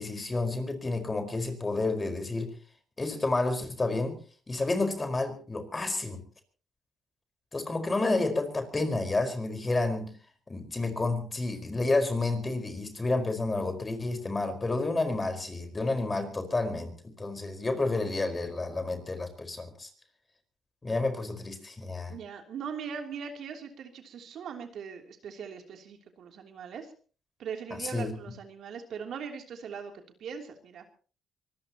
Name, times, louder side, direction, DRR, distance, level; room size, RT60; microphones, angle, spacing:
voice 1, 0.0-2.5 3.0-4.2 4.5-6.2 7.5-10.1 10.5-19.9 20.8-22.1 27.8-28.1, left 2 dB, 25° left, 7 dB, 4.8 m, -30 dB
voice 2, 22.1-26.9 27.4-29.9 30.2-30.8, right 6 dB, 70° right, 4 dB, 3.1 m, -40 dB
24.5 x 19.5 x 3.0 m, 0.39 s
cardioid pair, 80°, 0 cm